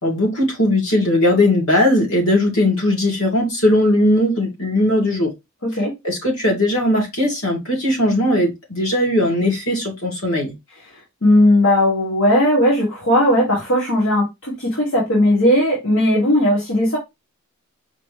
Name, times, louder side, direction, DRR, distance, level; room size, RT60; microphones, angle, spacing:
voice 1, 0.0-5.3 6.0-10.5, left 1 dB, 85° left, 2.2 m, -18 dB
voice 2, 5.6-5.9 11.2-17.0, left 1 dB, 65° left, 1.5 m, -17 dB
5.1 x 3.0 x 3.2 m
head